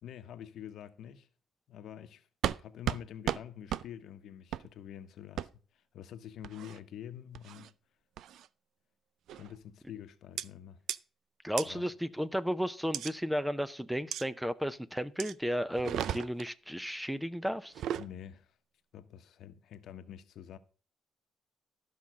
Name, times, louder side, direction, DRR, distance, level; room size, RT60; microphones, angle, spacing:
voice 1, 0.0-1.3 1.7-2.3 2.6-7.7 9.3-10.8 11.7-11.9 18.0-18.5 18.9-20.6, left 10 dB, 75° left, 1.0 m, -47 dB
sound 1, 2.4-2.6 2.9-3.0 3.3-3.4 3.7-3.8 4.5-4.7 5.4-5.5 6.4-6.8 7.3-7.7 8.2-8.5 9.3-9.6 10.4-10.5 10.9-11.0 11.6-11.7 12.9-13.1 14.1-14.2 15.2-15.3 15.8-16.5 17.6-18.1, right 10 dB, 75° right, 0.4 m, -34 dB
voice 2, 11.4-17.7, equal, 5° right, 0.7 m, -33 dB
13.0 x 5.6 x 6.2 m
cardioid pair, 90°, 0 cm